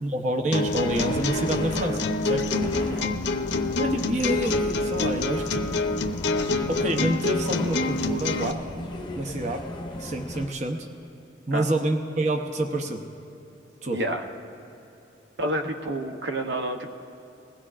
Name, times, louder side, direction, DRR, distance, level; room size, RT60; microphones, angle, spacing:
voice 1, 0.0-2.5 3.8-5.6 6.7-8.6 9.2-9.7 10.0-10.9 11.5-13.0 13.8-14.0, right 1 dB, 40° right, 4 dB, 0.7 m, -27 dB
sound 1, 0.5-8.5, left 3 dB, 80° left, 0.6 m, -27 dB
sound 2, 0.6-10.5, left 1 dB, 25° left, 0.7 m, -35 dB
voice 2, 13.9-14.2 15.4-16.9, right 1 dB, 75° right, 5 dB, 0.8 m, -29 dB
21.0 x 16.0 x 2.4 m, 3.0 s
head